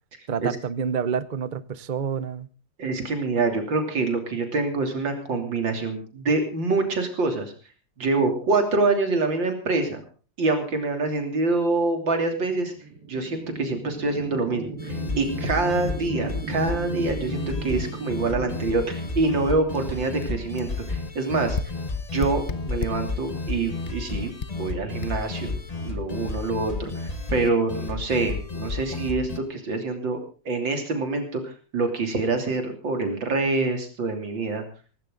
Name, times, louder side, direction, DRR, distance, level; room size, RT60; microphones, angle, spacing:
voice 1, 0.3-2.5, right 7 dB, 45° right, 16 dB, 0.6 m, -28 dB
voice 2, 2.8-7.5 8.0-10.0 10.4-12.7 13.1-21.6 22.1-30.2 30.5-34.6, right 3 dB, 90° right, 5 dB, 3.8 m, -26 dB
sound 1, 12.3-20.0, right 4 dB, 75° right, 2.5 m, -37 dB
sound 2, 14.8-29.4, left 3 dB, 25° left, 1.3 m, -32 dB
sound 3, 19.7-19.8 20.2-20.3 20.6-20.7 21.5-23.1 23.8-24.0 24.4-24.6 25.0-25.1, left 5 dB, 40° left, 0.7 m, -33 dB
18.0 x 16.5 x 3.8 m, 0.36 s
omnidirectional pair, 2.0 m